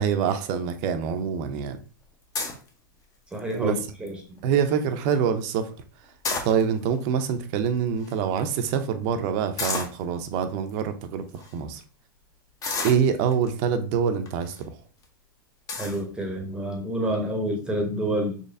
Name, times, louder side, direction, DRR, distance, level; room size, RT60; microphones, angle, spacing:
voice 1, 0.0-1.8 3.6-3.8 4.4-5.7 6.4-11.8 12.8-14.8, right 7 dB, 50° right, 0.5 m, -25 dB
sound 1, 2.3-2.7 3.3-3.6 4.1-4.2 4.4-4.7 6.0-6.9 7.7-7.8 8.0-8.1 9.6-10.0 10.7-10.8 11.3-11.5 12.6-13.5 14.3-14.6 15.0-15.1 15.7-16.0, left 4 dB, 30° left, 0.9 m, -31 dB
voice 2, 3.3-4.4 15.8-18.4, right 1 dB, 10° right, 0.8 m, -28 dB
4.1 x 3.1 x 2.5 m
hypercardioid pair, 110°, 12 cm